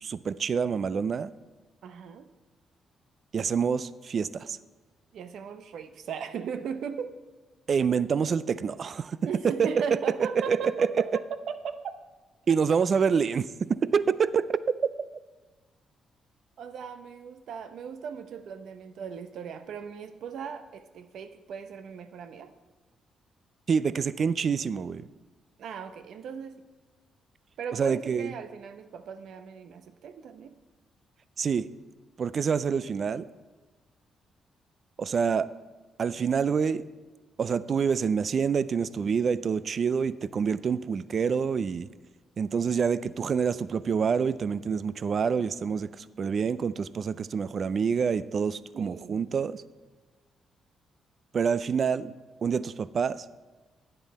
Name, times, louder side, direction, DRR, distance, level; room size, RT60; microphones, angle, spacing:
voice 1, 0.0-1.3 3.3-4.6 7.7-9.2 9.4-9.7 10.3-11.1 12.5-14.8 23.7-25.1 27.7-28.3 31.4-31.7 32.2-33.3 35.0-35.5 36.0-36.8 37.4-41.9 42.4-49.6 51.3-52.1 52.4-53.3, right 6 dB, 50° right, 17 dB, 0.3 m, -27 dB
voice 2, 1.8-2.3 5.1-7.1 9.2-11.9 12.5-12.6 16.6-22.5 25.6-26.6 27.6-30.5 48.7-49.5, right 7 dB, 75° right, 11 dB, 0.7 m, -38 dB
11.0 x 9.0 x 4.2 m, 1.3 s
cardioid pair, 100°, 0 cm